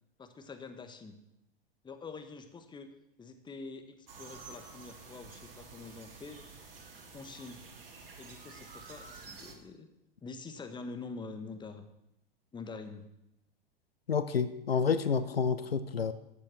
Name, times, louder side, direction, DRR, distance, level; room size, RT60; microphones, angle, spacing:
voice 1, 0.2-1.2 1.8-2.9 3.2-6.4 7.1-7.6 8.2-9.9 10.2-11.8 12.5-13.1, left 4 dB, 15° left, 7 dB, 1.5 m, -45 dB
sound 1, 4.1-9.5, right 4 dB, 70° right, 2.7 m, -50 dB
voice 2, 14.1-16.1, left 6 dB, 85° left, 13 dB, 0.9 m, -29 dB
14.0 x 8.5 x 6.1 m, 0.86 s
hypercardioid pair, 100°, 29 cm